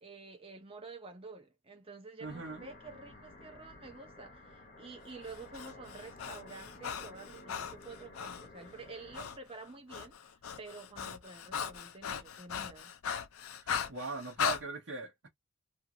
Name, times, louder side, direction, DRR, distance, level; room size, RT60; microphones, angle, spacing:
voice 1, 0.0-12.9, right 3 dB, 25° right, 0.7 m, -49 dB
sound 1, 2.2-9.2, left 2 dB, 40° left, 0.8 m, -53 dB
voice 2, 2.2-2.7 13.6-15.3, right 4 dB, 60° right, 0.9 m, -41 dB
Breathing, 5.3-8.5 9.1-9.4 9.7-14.6, left 7 dB, 80° left, 0.5 m, -38 dB
2.6 x 2.4 x 2.9 m
head